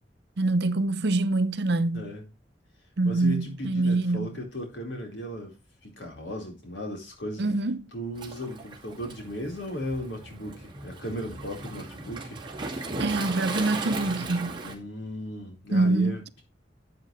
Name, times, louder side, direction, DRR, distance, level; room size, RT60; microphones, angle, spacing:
voice 1, 0.4-2.1 3.0-4.3 7.4-7.9 13.0-14.6 15.7-16.1, right 2 dB, 65° right, 0.7 m, -25 dB
voice 2, 1.9-2.2 3.0-5.6 5.8-7.4 7.9-12.4 14.6-16.4, equal, 90° left, 4.4 m, -36 dB
Waves surf, 8.2-14.7, right 3 dB, 25° right, 2.3 m, -37 dB
12.0 x 7.8 x 3.2 m
head